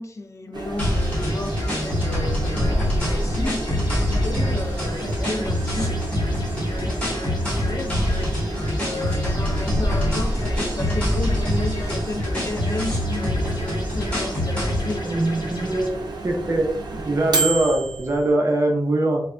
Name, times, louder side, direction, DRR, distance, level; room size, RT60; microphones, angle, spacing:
voice 1, 0.0-6.1 6.6-8.0 8.8-13.4 13.7-15.4, left 2 dB, 45° left, 5 dB, 0.4 m, -33 dB
Microwave oven, 0.5-18.3, right 3 dB, 85° right, 0.5 m, -32 dB
sound 1, 0.8-15.0, left 1 dB, 15° left, 1.2 m, -25 dB
sound 2, 0.9-15.9, left 1 dB, 90° left, 0.7 m, -35 dB
voice 2, 15.0-15.9 16.2-16.7 16.9-19.2, right 2 dB, 40° right, 1 dB, 0.6 m, -22 dB
3.3 x 2.1 x 2.4 m, 0.65 s
wide cardioid pair, 110°, 7 cm